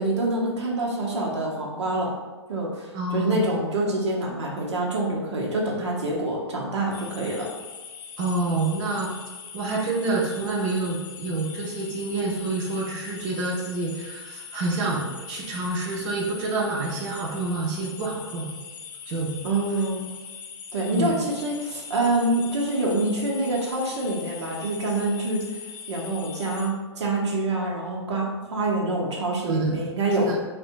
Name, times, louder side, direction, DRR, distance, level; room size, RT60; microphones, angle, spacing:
voice 1, 0.0-2.1 2.5-7.5 19.4-20.1 20.7-30.3, right 2 dB, 75° right, -2 dB, 0.8 m, -26 dB
voice 2, 2.9-3.4 8.2-9.1 9.5-18.5 19.1-19.4 20.9-21.2 29.4-29.8 30.3-30.4, right 3 dB, 40° right, -2 dB, 0.6 m, -28 dB
sound 1, 6.9-26.7, left 7 dB, 45° left, 0.4 m, -41 dB
3.4 x 2.2 x 2.6 m, 1.3 s
figure-of-eight pair, 110°, 15 cm